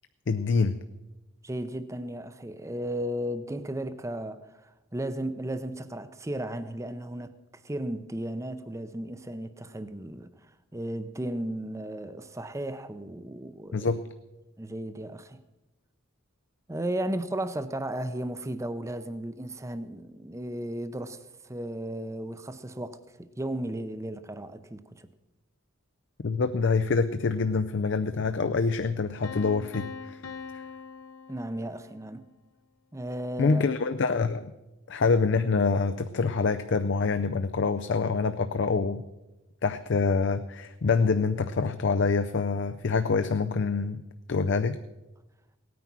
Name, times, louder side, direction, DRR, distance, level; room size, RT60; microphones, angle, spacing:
voice 1, 0.3-0.8 13.7-14.0 26.2-30.2 30.5-30.6 33.4-34.5 34.9-39.0 39.6-44.0 44.3-44.8, left 4 dB, 60° left, 0.5 m, -26 dB
voice 2, 1.4-7.4 7.6-10.3 10.7-14.0 14.6-15.4 16.7-25.1 31.3-32.3 32.9-33.7, right 1 dB, 15° right, 0.6 m, -35 dB
Piano, 29.2-32.1, left 5 dB, 90° left, 0.9 m, -42 dB
17.5 x 9.4 x 6.0 m
head